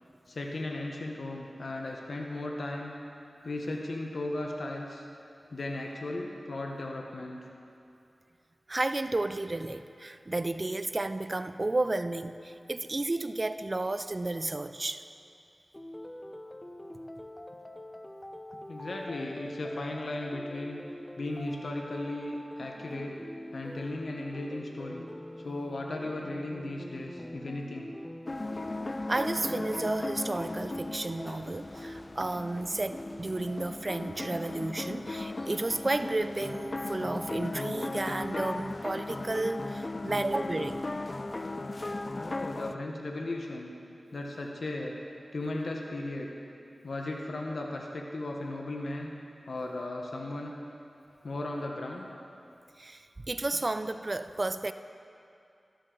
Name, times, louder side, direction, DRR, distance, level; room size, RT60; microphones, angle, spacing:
voice 1, 0.3-2.9 3.4-5.1 5.5-7.4 18.7-20.8 21.2-23.2 23.5-25.1 25.4-27.9 42.2-43.7 44.1-44.9 45.3-46.3 46.8-49.1 49.5-50.5 51.2-52.0, left 2 dB, 75° left, 1 dB, 1.0 m, -36 dB
voice 2, 8.7-15.0 29.1-40.9 52.8-54.7, right 2 dB, 40° right, 11 dB, 0.4 m, -32 dB
sound 1, 15.7-34.1, left 1 dB, 20° left, 0.8 m, -45 dB
sound 2, 28.3-42.8, left 2 dB, 40° left, 0.4 m, -37 dB
13.0 x 11.5 x 3.9 m, 2.6 s
cardioid pair, 45°, 0 cm